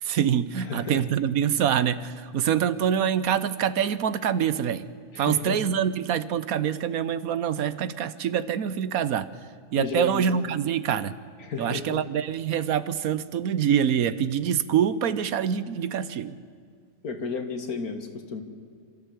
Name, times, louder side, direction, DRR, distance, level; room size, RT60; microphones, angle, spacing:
voice 1, 0.0-4.9 5.2-9.3 9.7-11.1 11.6-16.4, right 8 dB, 75° right, 15 dB, 1.3 m, -25 dB
voice 2, 0.7-1.0 5.1-5.6 9.8-10.3 11.4-12.0 17.0-18.4, left 5 dB, 85° left, 6 dB, 2.2 m, -32 dB
27.0 x 13.5 x 8.3 m, 2.3 s
omnidirectional pair, 1.5 m